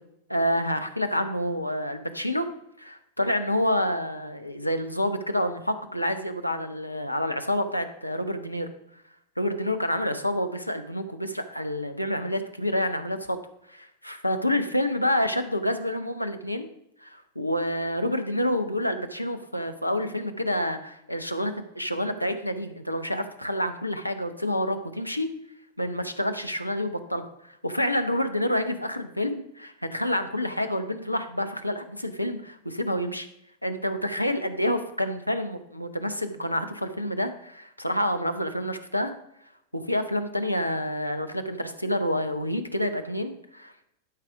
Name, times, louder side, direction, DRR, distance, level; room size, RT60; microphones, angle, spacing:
voice 1, 0.3-2.5 2.8-8.7 9.4-13.4 13.7-16.7 17.0-25.3 25.8-33.3 33.6-39.1 39.7-43.9, left 1 dB, 90° left, 8 dB, 0.8 m, -28 dB
12.0 x 4.9 x 4.8 m, 0.80 s
figure-of-eight pair, 90°, 0 cm